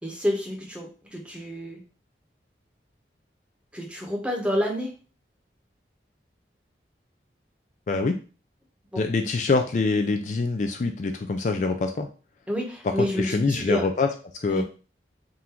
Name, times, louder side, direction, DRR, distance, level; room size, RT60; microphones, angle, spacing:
voice 1, 0.0-1.8 3.7-4.9 12.5-13.8 14.5-14.6, equal, 5° right, 1 dB, 0.8 m, -29 dB
voice 2, 7.9-8.2 9.0-12.1 12.8-14.1 14.3-14.6, left 3 dB, 40° left, 5 dB, 0.3 m, -25 dB
3.8 x 2.5 x 4.3 m, 0.36 s
head